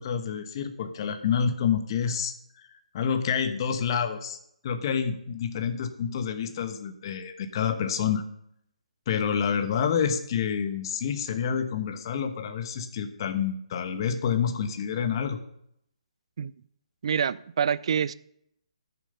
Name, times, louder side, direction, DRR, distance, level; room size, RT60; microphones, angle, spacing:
voice 1, 0.0-2.3 2.9-4.4 4.6-8.2 9.1-15.4, left 7 dB, 40° left, 1.1 m, -28 dB
voice 2, 17.0-18.1, right 7 dB, 55° right, 0.4 m, -26 dB
14.0 x 7.0 x 5.5 m
figure-of-eight pair, 145°, 4 cm